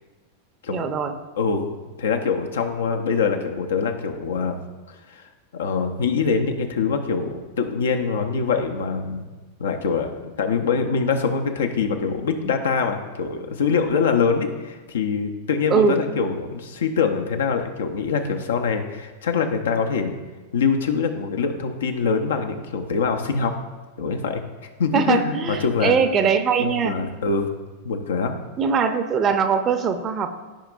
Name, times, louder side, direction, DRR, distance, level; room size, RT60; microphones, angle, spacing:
voice 1, 0.7-1.2 15.7-15.9 24.9-27.0 28.6-30.3, right 6 dB, 25° right, 8 dB, 0.7 m, -21 dB
voice 2, 1.4-1.7 2.0-4.6 5.1-5.2 5.5-9.3 9.6-20.2 20.5-23.6 24.0-24.4 24.8-26.0 26.6-27.5 27.8-28.3, left 5 dB, 65° left, 5 dB, 0.7 m, -24 dB
13.0 x 5.1 x 2.5 m, 1.3 s
figure-of-eight pair, 90°, 0 cm